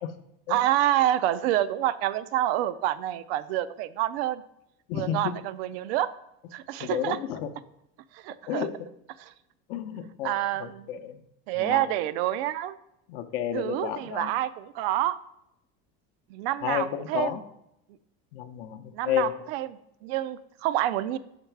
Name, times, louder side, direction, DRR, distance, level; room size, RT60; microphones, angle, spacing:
voice 1, 0.5-4.4 4.9-6.1 6.5-7.2 8.2-8.7 9.2-9.3 10.2-10.9 11.5-12.8 13.5-15.2 16.3-17.4 18.9-21.2, right 13 dB, 90° right, 14 dB, 0.5 m, -28 dB
voice 2, 4.9-5.3 6.8-7.4 8.5-8.7 9.7-10.3 10.6-11.2 11.6-11.8 13.1-14.3 16.6-17.4 18.3-18.8 19.1-19.3, left 10 dB, 75° left, 7 dB, 0.6 m, -31 dB
5.9 x 3.9 x 4.5 m, 0.80 s
cardioid pair, 135°, 30 cm